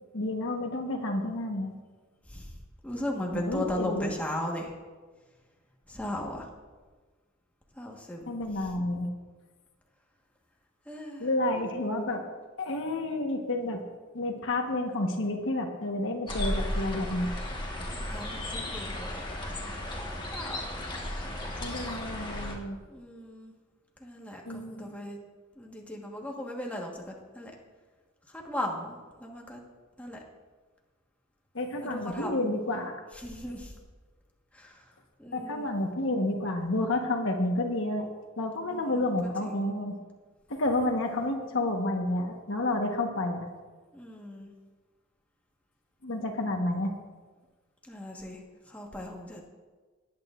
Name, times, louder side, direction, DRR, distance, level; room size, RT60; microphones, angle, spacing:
voice 1, 0.1-1.7 3.3-4.1 8.3-9.1 11.2-12.2 12.6-13.8 14.1-17.3 21.6-22.8 24.4-24.9 31.5-32.9 35.3-38.1 38.4-40.0 40.5-43.5 46.0-46.9, left 1 dB, 65° left, 3 dB, 1.2 m, -30 dB
voice 2, 2.8-4.7 5.9-6.5 7.8-8.3 10.9-11.3 11.5-11.6 17.9-19.3 20.3-20.6 22.9-23.5 24.0-25.2 25.6-27.5 28.3-29.6 30.0-30.2 31.8-32.4 33.1-33.7 34.5-34.8 35.2-35.7 38.7-39.1 39.4-39.7 43.9-44.5 47.8-48.4 48.7-49.4, left 1 dB, 5° left, -1 dB, 1.4 m, -37 dB
sound 1, 16.3-22.6, left 1 dB, 25° left, 1.4 m, -34 dB
19.0 x 8.8 x 2.5 m, 1.4 s
head